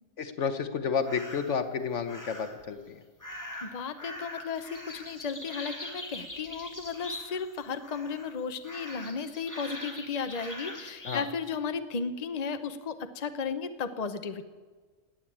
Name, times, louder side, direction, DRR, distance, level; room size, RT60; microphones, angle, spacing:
voice 1, 0.2-3.0 11.0-11.3, left 6 dB, 70° left, 10 dB, 1.4 m, -31 dB
sound 1, 1.0-1.6 2.1-2.6 3.2-7.5 7.8-8.3 8.6-11.3, left 1 dB, 15° left, 2.1 m, -42 dB
voice 2, 3.6-14.4, left 5 dB, 35° left, 9 dB, 0.9 m, -34 dB
17.5 x 9.2 x 8.6 m, 1.4 s
omnidirectional pair, 1.3 m